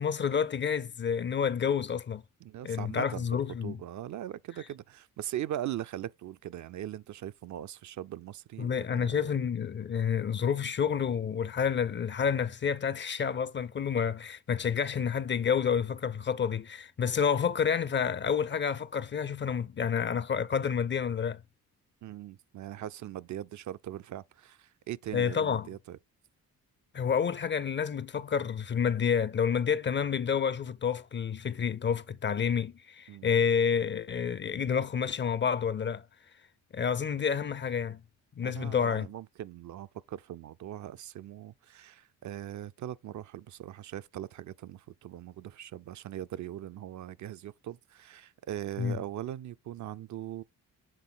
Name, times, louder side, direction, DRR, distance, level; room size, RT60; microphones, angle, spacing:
voice 1, 0.0-2.2 2.6-3.8 8.6-21.4 25.1-25.7 26.9-36.0 36.7-38.0 38.4-39.1 48.8-49.0, left 7 dB, 35° left, 0.5 m, -29 dB
voice 2, 2.4-9.4 22.0-26.0 33.1-33.3 38.4-50.4, right 12 dB, 55° right, 0.5 m, -40 dB
7.6 x 3.7 x 3.9 m
cardioid pair, 80°, 35 cm